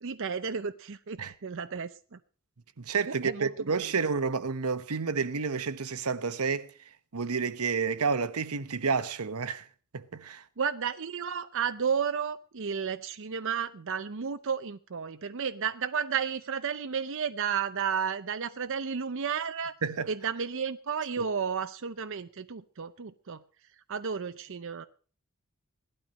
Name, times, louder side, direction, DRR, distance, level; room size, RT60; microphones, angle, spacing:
voice 1, 0.0-2.2 3.1-3.9 10.6-19.7 20.1-23.4 23.9-24.9, right 6 dB, 60° right, 0.6 m, -32 dB
voice 2, 2.8-6.7 7.1-9.7 9.9-10.4 19.8-20.1 21.2-21.3, right 5 dB, 85° right, 1.0 m, -30 dB
17.5 x 12.0 x 5.3 m
head